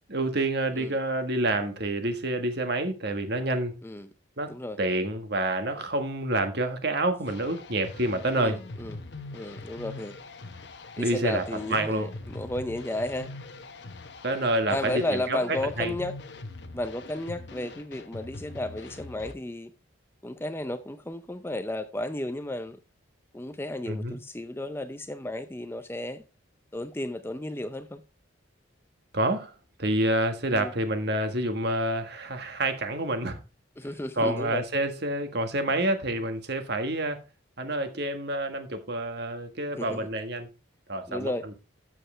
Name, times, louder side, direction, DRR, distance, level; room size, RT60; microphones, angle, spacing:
voice 1, 0.1-3.8 4.4-8.6 11.0-11.4 11.7-12.1 14.2-16.0 23.9-24.1 29.1-29.5 29.8-33.4 34.2-37.2 37.6-40.5 40.9-41.3, right 1 dB, 55° right, 1.6 m, -28 dB
voice 2, 4.5-4.8 8.4-9.0 9.3-10.2 11.0-13.3 14.7-16.1 16.7-19.7 20.2-22.8 23.3-26.2 26.7-28.0 30.5-30.7 33.8-34.6 39.8-40.1 41.1-41.4, left 1 dB, 10° left, 0.5 m, -33 dB
sound 1, 7.3-19.3, left 2 dB, 55° left, 1.0 m, -43 dB
12.0 x 7.7 x 3.3 m
head